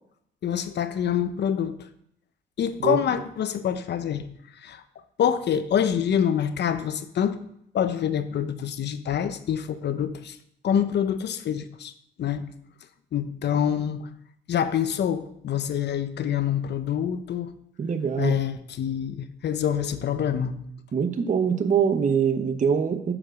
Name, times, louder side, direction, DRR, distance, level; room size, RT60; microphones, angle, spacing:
voice 1, 0.4-1.9 2.6-4.3 4.6-4.8 5.2-7.4 7.7-10.4 10.6-11.9 12.2-12.5 13.1-14.1 14.5-17.5 18.2-20.6, left 9 dB, 60° left, 11 dB, 0.8 m, -26 dB
voice 2, 17.8-18.4 20.9-23.1, right 6 dB, 40° right, 9 dB, 0.9 m, -23 dB
8.5 x 5.3 x 6.4 m, 0.73 s
cardioid pair, 90°, 20 cm